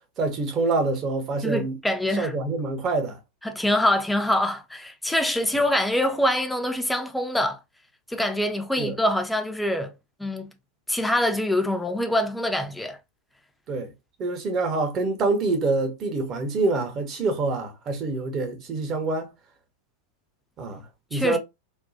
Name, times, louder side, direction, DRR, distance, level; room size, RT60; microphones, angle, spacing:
voice 1, 0.2-1.8 2.2-3.2 8.8-9.0 13.7-13.9 14.2-19.3 20.6-20.8 21.1-21.4, right 3 dB, 30° right, 0.9 m, -26 dB
voice 2, 1.4-2.3 3.4-7.6 8.1-9.9 10.2-10.5 10.9-13.0 21.1-21.4, left 1 dB, 5° left, 0.5 m, -24 dB
3.5 x 2.2 x 2.7 m
figure-of-eight pair, 90°, 0 cm